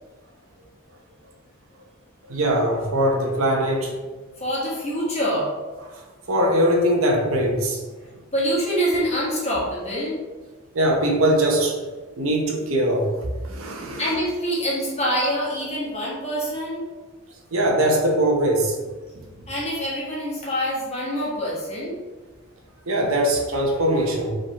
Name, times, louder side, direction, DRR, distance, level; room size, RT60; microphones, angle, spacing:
voice 1, 2.3-3.9 5.9-6.0 6.3-7.8 10.7-11.7 12.2-13.1 13.4-14.1 17.5-18.8 19.1-19.2 22.9-24.3, right 1 dB, 75° right, 1 dB, 0.8 m, -21 dB
voice 2, 4.4-5.5 8.3-10.2 14.0-16.8 19.5-22.0, equal, 30° left, -6 dB, 1.5 m, -25 dB
4.8 x 3.7 x 3.0 m, 1.3 s
head